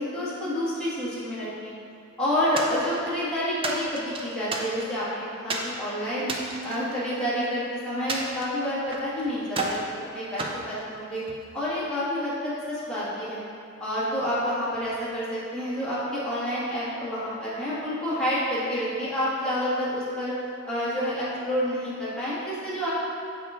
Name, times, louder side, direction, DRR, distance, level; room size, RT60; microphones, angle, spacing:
voice 1, 0.0-1.7 2.2-6.3 6.6-9.8 10.1-11.2 11.5-13.4 13.8-20.3 20.7-22.9, equal, 5° left, -11 dB, 1.6 m, -29 dB
sound 1, 2.6-3.2 3.6-5.0 5.5-5.7 6.2-7.6 8.1-9.1 9.5-9.9 10.4-11.4, right 2 dB, 25° right, 0.5 m, -33 dB
6.8 x 4.7 x 3.6 m, 2.4 s
head